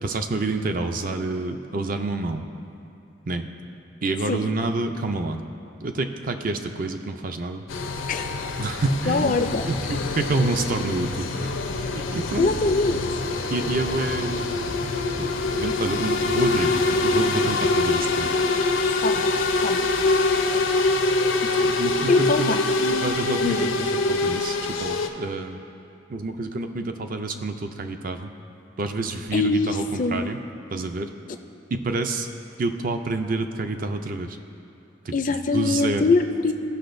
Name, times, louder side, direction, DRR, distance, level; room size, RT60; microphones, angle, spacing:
voice 1, 0.0-2.4 3.3-3.5 4.0-5.4 5.8-7.6 8.6-9.4 9.7-11.5 11.9-12.5 13.5-14.4 15.2-16.7 17.0-18.3 21.6-22.6 22.9-25.6 26.1-28.3 28.8-30.4 30.7-31.1 31.7-32.3 32.6-34.4 35.1-35.2 35.5-36.0, right 3 dB, 45° right, 6 dB, 0.4 m, -28 dB
sound 1, 7.7-25.1, left 3 dB, 80° left, 0.6 m, -24 dB
voice 2, 9.1-9.6 12.4-13.0 19.0-19.3 19.6-19.8 20.4-20.6 21.4-21.5 22.1-22.6 23.4-23.7 29.3-30.3 35.1-36.5, left 3 dB, 40° left, 7 dB, 0.4 m, -23 dB
17.0 x 6.0 x 2.6 m, 2.6 s
head